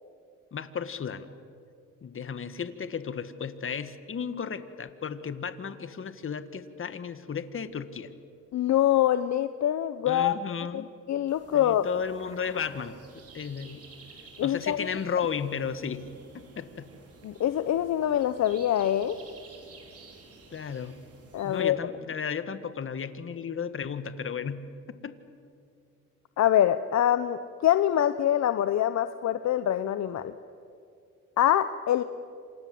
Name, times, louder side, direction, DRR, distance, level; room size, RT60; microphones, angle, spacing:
voice 1, 0.5-1.3 2.0-8.1 10.1-10.9 11.5-13.8 14.4-16.0 16.3-16.9 20.5-21.0 21.4-24.6 25.0-25.1, left 6 dB, 45° left, 11 dB, 1.9 m, -34 dB
voice 2, 8.5-10.4 10.7-10.8 11.1-11.9 14.4-14.9 17.2-19.2 21.3-21.8 26.4-30.3 31.4-32.0, left 11 dB, 65° left, 11 dB, 1.0 m, -24 dB
sound 1, 11.3-21.6, right 4 dB, 50° right, 5.2 m, -52 dB
28.0 x 27.0 x 7.9 m, 2.4 s
cardioid pair, 90°, 30 cm